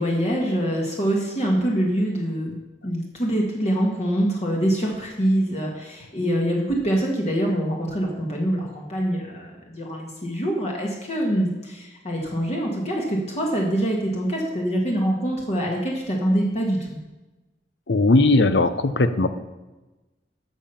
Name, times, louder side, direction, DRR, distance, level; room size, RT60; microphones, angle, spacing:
voice 1, 0.0-2.6 2.8-17.0, right 1 dB, 40° left, -1 dB, 1.7 m, -24 dB
voice 2, 17.9-19.3, left 2 dB, 75° left, 12 dB, 0.8 m, -18 dB
12.5 x 7.1 x 5.8 m, 1.1 s
head